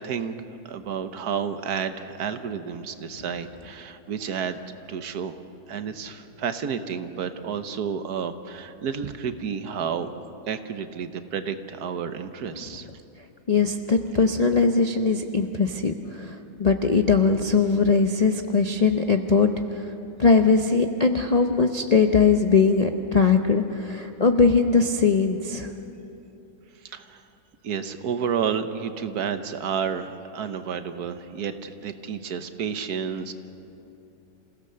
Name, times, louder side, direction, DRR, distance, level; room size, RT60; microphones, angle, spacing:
voice 1, 0.0-4.6 4.9-5.4 5.7-10.1 10.5-12.9 26.8-27.2 27.6-33.3, right 7 dB, 65° right, 9 dB, 1.4 m, -31 dB
voice 2, 13.5-19.5 19.8-19.9 20.2-25.7, left 4 dB, 50° left, 6 dB, 0.4 m, -20 dB
28.0 x 16.5 x 6.7 m, 2.8 s
omnidirectional pair, 1.8 m